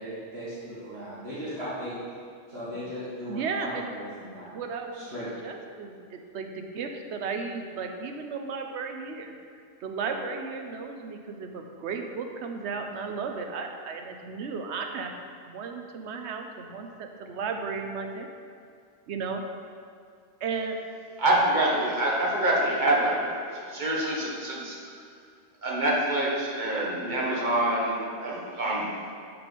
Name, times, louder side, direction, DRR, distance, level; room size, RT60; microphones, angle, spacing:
voice 1, 0.0-2.0 2.5-4.6 4.9-5.3 27.0-27.2, equal, 70° right, -10 dB, 1.8 m, -37 dB
voice 2, 3.3-3.9 4.3-5.1 5.4-9.3 9.8-15.1 15.5-18.3 19.1-19.4 20.4-20.8, right 5 dB, 85° right, 4 dB, 1.0 m, -34 dB
voice 3, 21.2-24.8 25.6-28.9, right 1 dB, 45° right, -4 dB, 1.3 m, -26 dB
6.9 x 4.6 x 5.2 m, 2.2 s
omnidirectional pair, 1.1 m